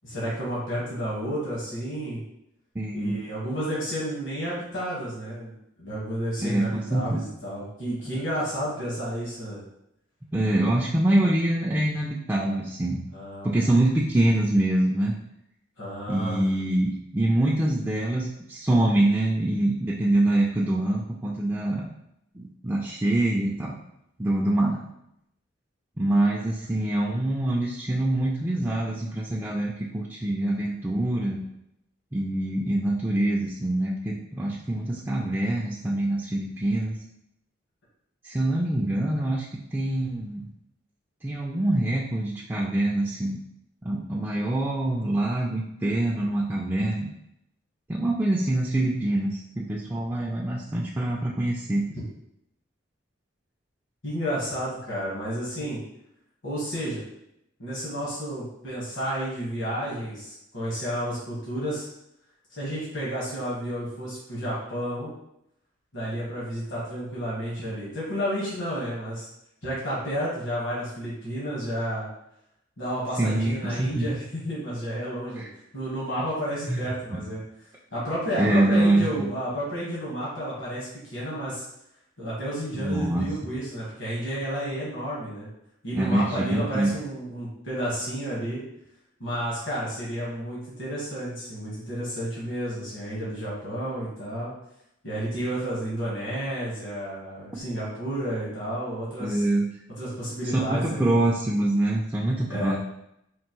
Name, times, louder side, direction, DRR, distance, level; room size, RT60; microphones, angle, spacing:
voice 1, 0.0-2.2 2.9-5.5 5.8-9.6 13.1-13.6 15.8-16.4 54.0-55.8 56.4-57.0 57.6-61.9 62.6-65.1 65.9-69.3 69.6-72.1 72.8-75.4 75.7-77.4 77.9-81.6 82.2-85.5 85.8-88.6 89.2-94.5 95.0-99.4 100.0-101.3 102.5-102.8, equal, 70° left, -7 dB, 1.5 m, -31 dB
voice 2, 2.8-3.2 6.4-7.2 8.1-8.2 10.3-13.0 13.4-15.1 16.1-21.9 22.3-23.8 24.2-24.8 26.0-31.4 32.1-37.0 38.2-40.4 41.2-43.4 43.8-47.1 47.9-51.8 73.2-74.1 75.4-75.5 76.7-76.8 77.1-77.2 78.4-79.3 82.7-83.3 85.9-86.9 99.2-99.7 100.5-102.8, right 1 dB, 10° right, -4 dB, 0.3 m, -25 dB
4.4 x 2.6 x 3.0 m, 0.80 s
head